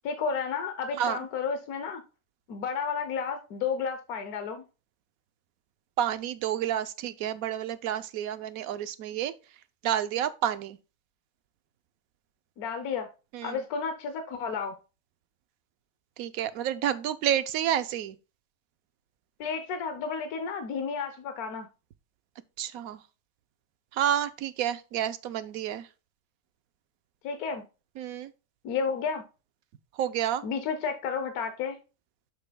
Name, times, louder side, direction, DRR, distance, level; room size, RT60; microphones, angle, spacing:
voice 1, 0.0-2.0 2.5-4.6 12.6-13.1 13.4-14.7 19.4-21.7 27.2-27.6 28.6-29.2 30.4-31.8, left 6 dB, 80° left, 1.3 m, -32 dB
voice 2, 6.0-9.3 9.8-10.8 13.3-13.6 16.2-18.2 22.6-23.0 23.9-25.9 28.0-28.3 29.9-30.4, right 10 dB, 75° right, 1.1 m, -29 dB
10.0 x 6.8 x 2.2 m
omnidirectional pair, 1.5 m